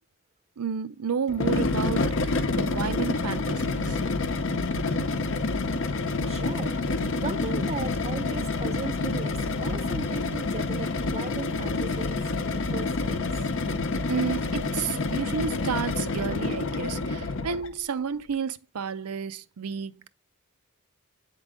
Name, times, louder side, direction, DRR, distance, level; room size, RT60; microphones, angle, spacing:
voice 1, 0.6-4.0 14.1-20.1, right 6 dB, 85° right, 0.5 m, -31 dB
sound 1, 1.3-17.7, left 3 dB, 55° left, 0.7 m, -28 dB
voice 2, 6.2-6.8 7.2-13.3, right 4 dB, 30° right, 0.6 m, -37 dB
8.9 x 3.8 x 3.6 m
head